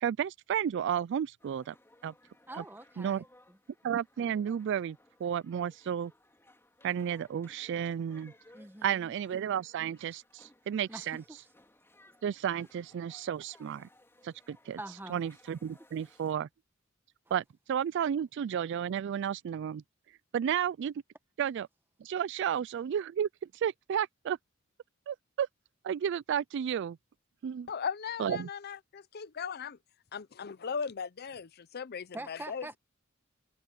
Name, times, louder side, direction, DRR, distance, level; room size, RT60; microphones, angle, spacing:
voice 1, 0.0-1.7 2.0-2.1 2.5-2.6 3.0-3.2 3.8-6.1 6.8-8.3 8.8-11.2 12.2-13.9 14.2-14.8 15.1-16.5 17.3-19.8 20.3-20.9 21.4-21.7 22.0-23.3 23.5-24.4 25.1-25.5 25.8-27.0 27.4-27.7 28.2-28.5, right 9 dB, 60° right, 0.3 m, -32 dB
sound 1, 1.4-16.3, left 1 dB, 10° left, 4.0 m, -62 dB
voice 2, 2.5-3.6 8.5-9.1 10.9-11.4 14.8-15.2 32.1-32.8, right 1 dB, 10° right, 1.2 m, -45 dB
voice 3, 27.7-29.8 30.1-32.8, left 6 dB, 50° left, 0.6 m, -38 dB
head